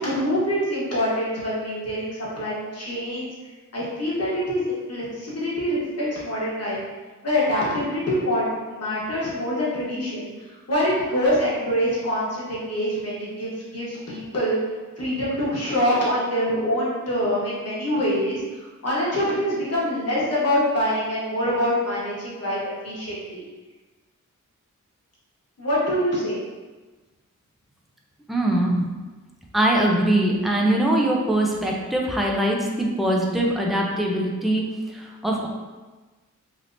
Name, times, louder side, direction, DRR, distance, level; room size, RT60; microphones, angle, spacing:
voice 1, 0.0-3.3 3.7-6.8 7.2-10.3 10.7-14.6 15.0-18.4 18.8-23.4 25.6-26.4, equal, 50° left, -7 dB, 1.1 m, -25 dB
voice 2, 28.3-28.9 29.5-35.5, right 1 dB, ahead, -2 dB, 0.4 m, -22 dB
3.4 x 2.8 x 2.5 m, 1.3 s
wide cardioid pair, 110°, 31 cm